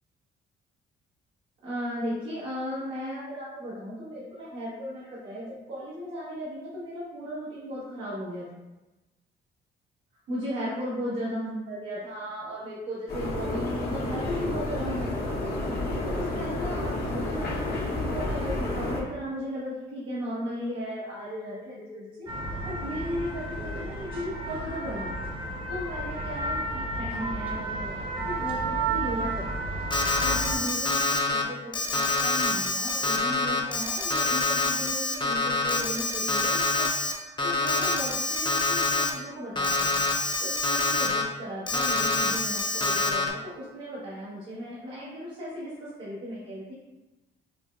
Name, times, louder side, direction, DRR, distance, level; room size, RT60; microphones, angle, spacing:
voice 1, 1.6-8.5 10.3-15.4 15.7-22.3 22.6-29.7 30.2-36.9 37.2-45.7 46.0-46.7, equal, 80° right, -11 dB, 1.3 m, -36 dB
sound 1, 13.1-19.0, left 1 dB, 50° left, 0.9 m, -30 dB
sound 2, 22.3-30.6, right 2 dB, 25° right, 0.9 m, -32 dB
Alarm, 29.9-31.4 31.7-37.1 37.4-39.1 39.6-41.2 41.7-43.3, left 3 dB, 25° left, 0.5 m, -26 dB
5.5 x 2.0 x 2.3 m, 1.1 s
cardioid pair, 90°, 20 cm